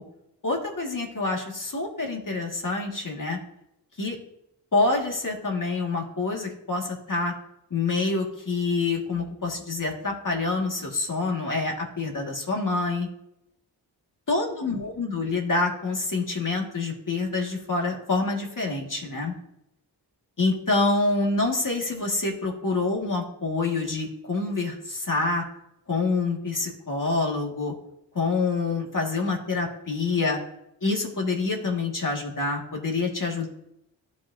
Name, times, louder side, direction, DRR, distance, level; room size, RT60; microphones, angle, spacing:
voice 1, 0.4-3.4 4.0-4.2 4.7-7.3 7.7-13.1 14.3-19.3 20.4-25.4 25.9-27.7 28.1-30.4 30.8-33.5, left 3 dB, 45° left, 0 dB, 2.1 m, -27 dB
14.5 x 5.2 x 2.8 m, 0.81 s
wide cardioid pair, 65°, 44 cm